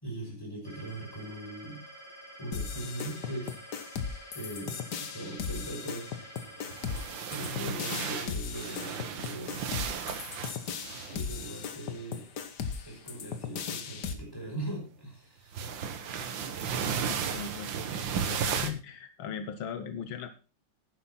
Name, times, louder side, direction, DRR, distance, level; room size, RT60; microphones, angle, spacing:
voice 1, 0.0-1.8 2.4-3.5 4.3-6.1 7.3-9.6 10.7-12.3 12.8-15.6, right 1 dB, 10° left, 0 dB, 5.5 m, -40 dB
sound 1, 0.6-7.5, right 1 dB, 20° right, 4.2 m, -49 dB
sound 2, 2.5-14.1, left 6 dB, 60° left, 1.7 m, -37 dB
sound 3, 6.6-11.6 13.4-13.6 15.5-18.7, right 7 dB, 70° right, 1.8 m, -34 dB
voice 2, 17.0-20.3, left 7 dB, 85° left, 10 dB, 1.7 m, -39 dB
11.0 x 10.0 x 4.3 m, 0.33 s
omnidirectional pair, 2.2 m